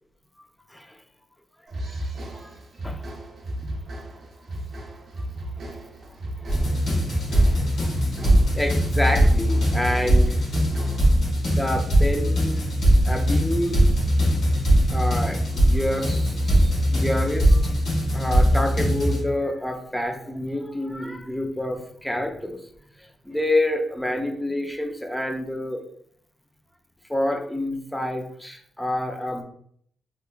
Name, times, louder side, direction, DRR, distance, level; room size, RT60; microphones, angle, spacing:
sound 1, 1.7-11.2, right 1 dB, 45° right, 0.6 m, -34 dB
sound 2, 6.5-19.2, equal, 75° left, 1.2 m, -20 dB
voice 1, 8.5-10.4 11.5-12.7 13.1-13.8 14.9-17.7 18.1-22.6 23.3-25.8 27.1-29.4, left 1 dB, 5° left, 4 dB, 0.4 m, -28 dB
3.4 x 2.9 x 2.4 m, 0.64 s
wide cardioid pair, 150°, 0 cm